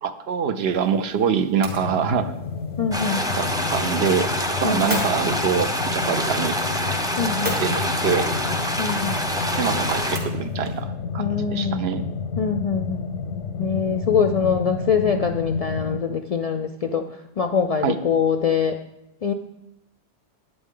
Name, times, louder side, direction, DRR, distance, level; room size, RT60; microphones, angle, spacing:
voice 1, 0.0-2.3 3.4-4.3 4.6-6.6 7.6-8.3 9.6-12.1 17.8-18.0, right 7 dB, 70° right, 11 dB, 0.9 m, -25 dB
sound 1, 0.5-10.8, equal, 40° right, 2.2 m, -39 dB
sound 2, 1.6-16.0, left 5 dB, 90° left, 0.9 m, -30 dB
voice 2, 2.8-3.3 4.6-5.0 7.2-7.6 8.8-9.2 11.2-11.8 12.4-13.1 13.6-18.8 19.2-19.3, left 6 dB, 55° left, 7 dB, 0.4 m, -24 dB
sound 3, 2.9-10.2, equal, 5° right, 0.7 m, -26 dB
11.0 x 9.4 x 3.7 m, 0.86 s
omnidirectional pair, 1.1 m